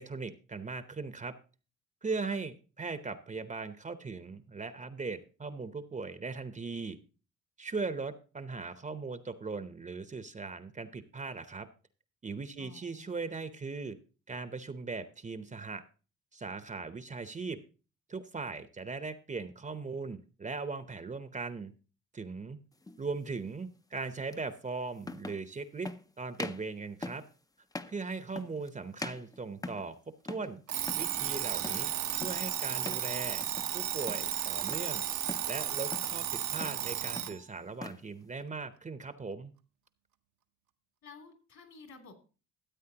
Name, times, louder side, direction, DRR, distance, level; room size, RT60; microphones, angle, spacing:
voice 1, 0.0-1.3 2.0-7.0 7.6-11.7 12.2-14.0 14.3-15.8 16.3-17.6 18.1-21.7 22.1-22.6 23.0-25.9 26.2-27.2 27.9-29.9 30.3-30.6 31.0-33.5 33.7-35.0 35.5-39.5, right 4 dB, 25° right, 11 dB, 0.7 m, -39 dB
voice 2, 12.6-13.4 41.0-42.1, left 4 dB, 65° left, 3 dB, 2.9 m, -53 dB
sound 1, 22.8-23.0 24.3-24.4 25.0-25.5 25.8-26.0 26.3-26.7 27.0-27.3 27.7-28.0 28.4-28.7 29.0-29.9 30.3-30.5 30.8-31.1 31.6-31.9 32.2-32.5 32.8-33.1 33.4-33.8 34.1-34.9 35.3-35.5 35.9-36.2 36.5-36.9 37.2-38.0, left 2 dB, 10° left, 0.5 m, -42 dB
Alarm, 30.7-37.4, right 11 dB, 70° right, 0.8 m, -34 dB
13.5 x 8.2 x 2.8 m, 0.35 s
cardioid pair, 90°, 30 cm